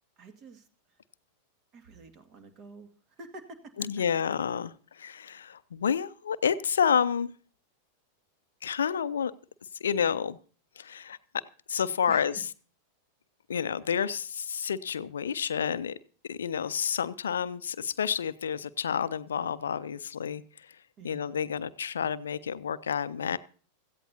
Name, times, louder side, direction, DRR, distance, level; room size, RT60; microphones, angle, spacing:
voice 1, 0.2-0.7 1.7-2.9 3.2-3.7 12.1-12.3 21.0-21.3, right 2 dB, 35° right, 8 dB, 2.0 m, -48 dB
voice 2, 3.8-7.3 8.6-9.3 9.8-10.4 10.8-11.4 11.7-12.5 13.5-16.0 16.2-20.8 21.0-23.4, left 7 dB, 65° left, 16 dB, 0.5 m, -29 dB
17.0 x 14.5 x 2.8 m, 0.40 s
figure-of-eight pair, 90°, 0 cm